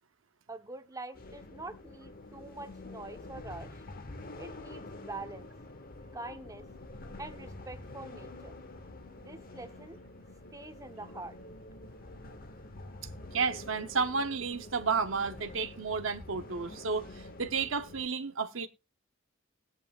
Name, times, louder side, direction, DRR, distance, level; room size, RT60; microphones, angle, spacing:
voice 1, 0.5-3.8 4.4-5.5 6.1-6.6 7.2-8.5 9.2-10.0 10.5-11.4, right 2 dB, 15° right, 1.0 m, -45 dB
sound 1, 1.1-18.1, left 2 dB, 45° left, 1.1 m, -47 dB
voice 2, 13.3-18.7, right 5 dB, 70° right, 0.8 m, -32 dB
20.0 x 8.1 x 2.5 m
head